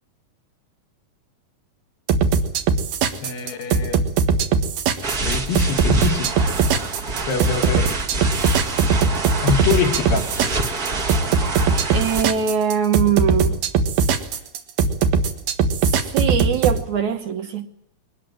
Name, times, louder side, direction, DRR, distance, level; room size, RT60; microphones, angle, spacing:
sound 1, 2.1-16.8, right 5 dB, 80° right, 3.4 m, -20 dB
voice 1, 3.2-4.1 5.2-6.3 7.1-7.9 9.4-10.3, left 7 dB, 70° left, 3.3 m, -25 dB
sound 2, 5.0-12.2, right 3 dB, 35° right, 1.5 m, -26 dB
voice 2, 11.9-13.6 15.9-17.7, right 8 dB, 65° right, 2.1 m, -22 dB
22.5 x 19.5 x 9.2 m
omnidirectional pair, 4.3 m